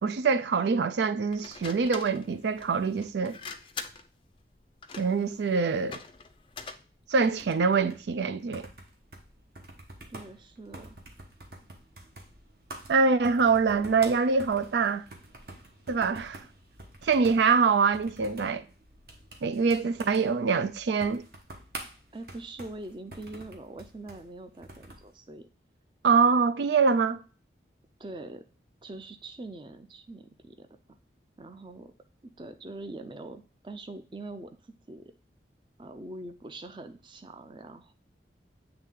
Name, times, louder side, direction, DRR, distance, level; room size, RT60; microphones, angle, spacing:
voice 1, 0.0-3.4 5.0-6.0 7.1-8.7 12.9-15.0 15.9-16.4 17.0-18.6 19.4-21.2 26.0-27.2, right 5 dB, 80° right, 0.4 m, -24 dB
sound 1, 1.3-7.7, left 5 dB, 30° left, 0.4 m, -44 dB
sound 2, 7.3-25.1, right 2 dB, 60° right, 1.2 m, -48 dB
voice 2, 10.1-11.0 22.1-25.5 28.0-28.4 28.8-30.7 31.4-31.9 32.2-35.1 35.8-37.9, right 2 dB, 25° right, 0.5 m, -43 dB
7.9 x 3.3 x 3.6 m
head